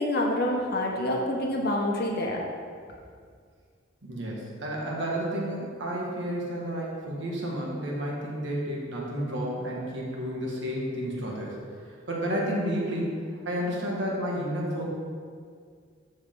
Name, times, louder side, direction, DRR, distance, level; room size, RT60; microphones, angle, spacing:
voice 1, 0.0-2.4, left 1 dB, 50° left, 0 dB, 1.2 m, -27 dB
voice 2, 4.0-11.6 12.1-13.1 13.5-14.9, equal, 60° right, -3 dB, 1.8 m, -31 dB
12.5 x 4.7 x 3.9 m, 2.1 s
head